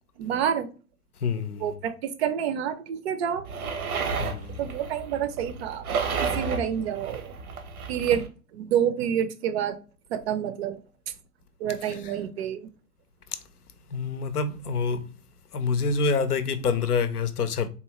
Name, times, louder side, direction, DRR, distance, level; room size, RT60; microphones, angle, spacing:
voice 1, 0.2-0.7 1.6-3.5 4.6-7.3 7.9-8.2 8.5-9.8 10.1-10.8 11.6-12.7, right 9 dB, 45° right, 0.5 m, -28 dB
voice 2, 1.2-1.8 4.2-4.6 11.9-12.1 13.3-13.4 13.9-15.1 15.5-17.7, left 5 dB, 90° left, 0.6 m, -27 dB
sound 1, 3.4-8.3, right 5 dB, 70° right, 0.9 m, -32 dB
3.7 x 2.4 x 2.9 m
figure-of-eight pair, 105°, 44 cm